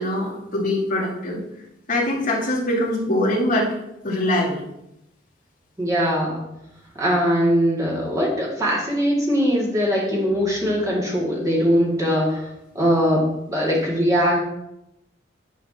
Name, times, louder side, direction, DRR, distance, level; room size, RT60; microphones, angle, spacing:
voice 1, 0.0-1.4 1.9-3.7 4.0-4.6, left 1 dB, 45° left, -6 dB, 2.3 m, -23 dB
voice 2, 5.8-6.4 7.0-12.5 12.7-14.4, equal, 20° right, -5 dB, 2.2 m, -21 dB
10.5 x 5.1 x 2.9 m, 0.85 s
head